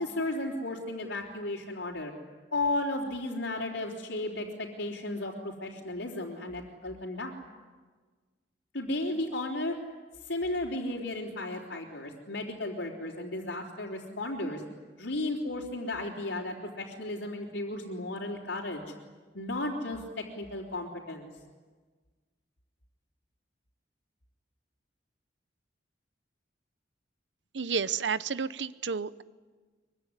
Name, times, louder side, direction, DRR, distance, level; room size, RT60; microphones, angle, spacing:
voice 1, 0.0-2.1 2.5-7.3 8.7-9.8 10.3-14.6 15.0-18.8 19.3-21.3, left 2 dB, 85° left, -5 dB, 3.9 m, -34 dB
voice 2, 27.5-29.2, right 6 dB, 75° right, 15 dB, 0.9 m, -31 dB
24.0 x 24.0 x 9.9 m, 1.4 s
head